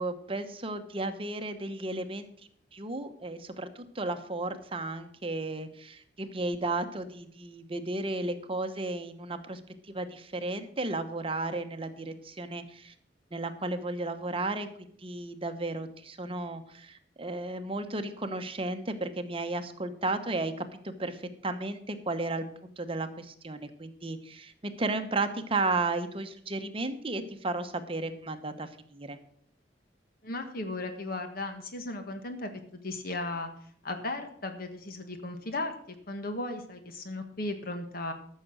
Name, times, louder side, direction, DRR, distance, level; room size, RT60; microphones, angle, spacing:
voice 1, 0.0-2.3 2.7-9.6 9.9-12.9 13.3-14.7 15.0-29.2, right 2 dB, 30° right, 8 dB, 1.0 m, -34 dB
voice 2, 30.2-32.5 32.8-33.5 33.8-38.1, left 2 dB, 55° left, 6 dB, 1.4 m, -36 dB
13.5 x 6.5 x 6.3 m, 0.62 s
head